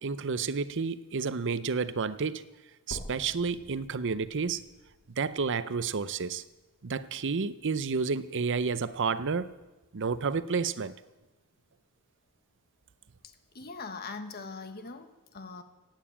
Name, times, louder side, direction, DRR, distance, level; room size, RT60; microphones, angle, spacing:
voice 1, 0.0-2.4 2.9-4.6 5.2-6.4 6.8-9.5 9.9-11.0, right 5 dB, 60° right, 0.7 m, -30 dB
sound 1, 2.9-6.9 7.5-7.6 8.1-8.2 8.6-8.7 9.5-9.6, equal, 75° left, 2.0 m, -49 dB
voice 2, 13.2-15.6, left 4 dB, 45° left, 1.4 m, -42 dB
16.0 x 9.1 x 8.7 m
head